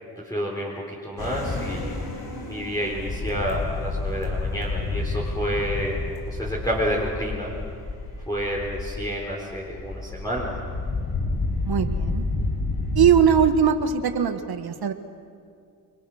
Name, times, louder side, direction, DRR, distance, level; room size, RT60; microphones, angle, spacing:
voice 1, 0.2-1.9 2.5-7.5 8.3-10.6, equal, 10° left, -4 dB, 4.3 m, -29 dB
sound 1, 1.2-13.5, left 3 dB, 60° left, 4.6 m, -30 dB
voice 2, 11.6-12.2 12.9-14.9, right 8 dB, 70° right, 8 dB, 1.4 m, -20 dB
29.5 x 22.0 x 6.3 m, 2.3 s
cardioid pair, 75°, 40 cm